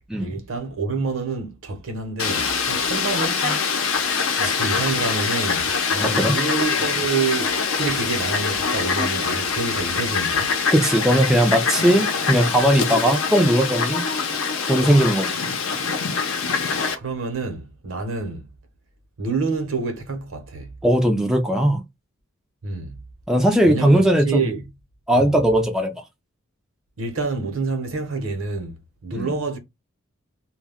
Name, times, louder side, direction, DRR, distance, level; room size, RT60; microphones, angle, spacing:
voice 1, 0.2-3.4 3.8-4.1 4.4-10.6 16.5-18.5 19.2-20.7 22.6-23.0 23.6-24.6 25.2-25.4 27.0-29.6, right 4 dB, 70° right, 0.8 m, -28 dB
Fowl, 2.2-17.0, left 5 dB, 75° left, 0.7 m, -24 dB
voice 2, 6.0-6.4 10.7-14.0 14.7-15.4 20.8-21.8 23.3-24.5 25.1-25.9 29.1-29.3, right 1 dB, ahead, 0.3 m, -19 dB
2.2 x 2.1 x 3.4 m
head